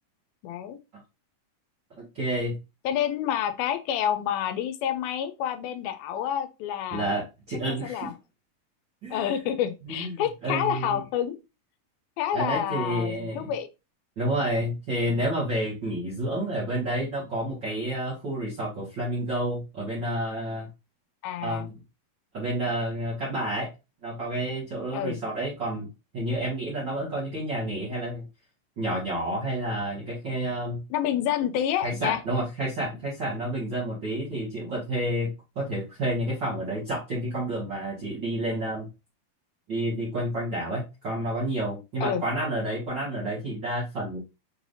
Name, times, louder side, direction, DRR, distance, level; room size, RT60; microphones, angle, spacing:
voice 1, 0.4-0.8 2.8-7.1 7.7-8.1 9.1-11.4 12.2-13.7 21.2-21.7 24.9-25.2 30.9-32.2 42.0-42.2, left 10 dB, 85° left, 2.4 m, -28 dB
voice 2, 2.1-2.5 6.9-8.1 9.0-9.4 9.9-11.0 12.3-13.5 14.2-20.7 21.4-21.7 22.3-23.7 24.0-25.9 26.1-28.2 28.8-30.8 31.8-35.3 35.5-38.9 39.7-44.2, right 1 dB, 50° right, 1.3 m, -30 dB
5.9 x 3.3 x 2.6 m
omnidirectional pair, 4.2 m